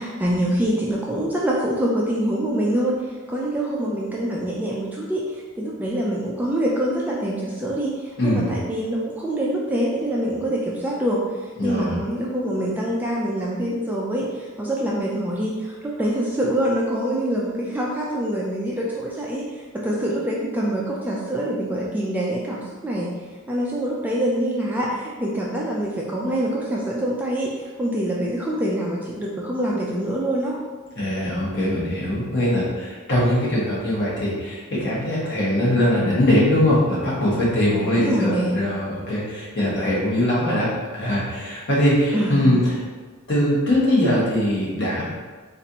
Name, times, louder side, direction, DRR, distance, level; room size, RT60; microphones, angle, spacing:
voice 1, 0.0-11.2 11.6-23.1 23.5-30.6 37.7-38.6 42.1-42.4, right 1 dB, 10° right, -4 dB, 0.3 m, -25 dB
voice 2, 8.2-8.5 11.6-12.0 31.0-42.8 43.3-45.1, left 1 dB, 55° left, -7 dB, 1.2 m, -21 dB
4.1 x 2.5 x 2.7 m, 1.4 s
head